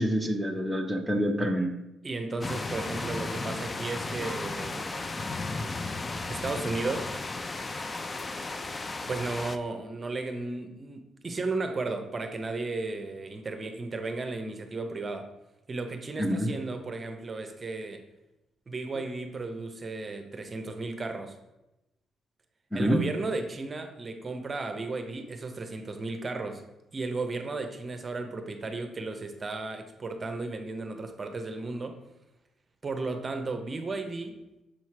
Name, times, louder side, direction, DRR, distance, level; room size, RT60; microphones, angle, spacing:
voice 1, 0.0-1.7 16.2-16.5 22.7-23.0, equal, ahead, 2 dB, 0.7 m, -27 dB
voice 2, 2.0-4.9 6.3-7.1 9.1-15.3 15.7-18.0 18.7-21.4 22.7-26.6 26.9-32.0 32.8-34.3, right 3 dB, 35° right, 6 dB, 0.7 m, -34 dB
sound 1, 2.4-9.6, left 3 dB, 30° left, 0.4 m, -34 dB
6.5 x 3.0 x 5.8 m, 0.95 s
cardioid pair, 90°, 0 cm